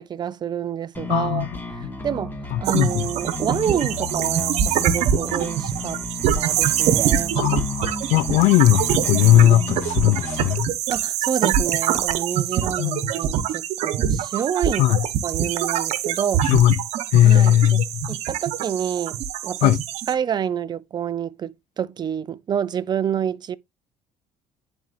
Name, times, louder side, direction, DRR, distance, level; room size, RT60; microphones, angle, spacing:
voice 1, 0.0-1.5 1.7-6.0 6.4-7.3 8.3-8.4 10.9-14.9 15.2-16.4 17.2-17.8 18.1-19.8 20.1-23.6, right 8 dB, 40° right, 0.5 m, -28 dB
sound 1, 0.9-10.5, left 3 dB, 15° left, 1.9 m, -33 dB
voice 2, 1.1-1.5 1.8-1.9 2.5-3.1 7.4-10.7 12.8-13.1 14.8-15.0 16.4-16.8 17.1-18.1 19.6-19.8, left 13 dB, 75° left, 0.4 m, -18 dB
sound 2, 2.6-20.1, right 10 dB, 70° right, 1.1 m, -24 dB
11.0 x 4.4 x 2.6 m
supercardioid pair, 90°, 12 cm